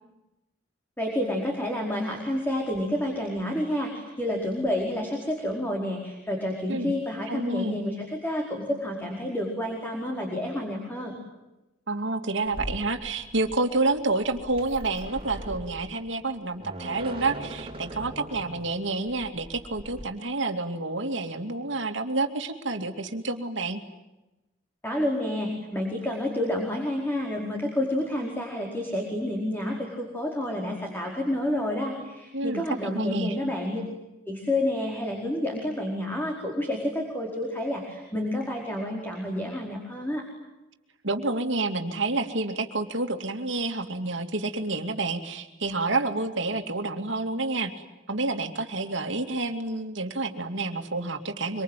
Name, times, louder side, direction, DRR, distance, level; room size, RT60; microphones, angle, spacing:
voice 1, 1.0-11.2 24.8-33.8 34.2-40.2, left 1 dB, 10° left, 0 dB, 4.8 m, -29 dB
voice 2, 7.3-7.8 11.9-23.8 32.3-33.3 41.0-47.7 48.1-51.6, right 3 dB, 70° right, 5 dB, 2.7 m, -29 dB
sound 1, 12.4-20.0, right 1 dB, 30° right, 3.8 m, -40 dB
25.5 x 25.0 x 9.3 m, 1.0 s
head